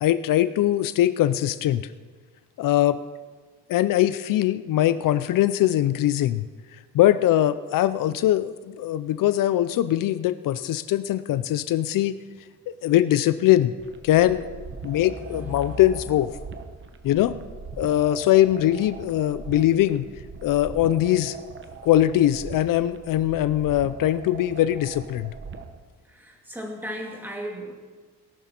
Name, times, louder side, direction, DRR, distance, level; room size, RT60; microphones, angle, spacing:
voice 1, 0.0-1.8 2.6-3.0 3.7-6.4 6.9-12.2 12.8-13.7 14.0-14.5 14.8-16.3 17.0-17.4 17.8-20.1 20.4-21.4 21.8-25.3, left 13 dB, 75° left, 13 dB, 0.5 m, -21 dB
sound 1, 13.8-25.8, right 5 dB, 35° right, 0.9 m, -41 dB
voice 2, 14.8-15.8 26.1-27.7, equal, 5° right, 0 dB, 2.2 m, -36 dB
18.5 x 11.0 x 4.4 m, 1.4 s
cardioid pair, 165°, 33 cm